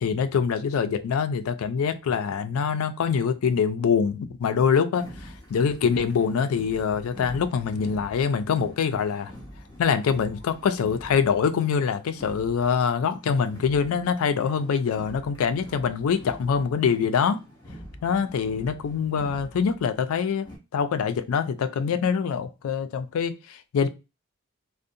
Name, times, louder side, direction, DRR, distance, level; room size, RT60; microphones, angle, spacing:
voice 1, 0.0-5.1 5.5-9.3 9.8-17.4 18.0-20.5 20.7-23.9, left 6 dB, 80° left, 0.3 m, -24 dB
sound 1, 4.9-20.6, equal, 20° left, 0.9 m, -46 dB
2.5 x 2.1 x 2.6 m
head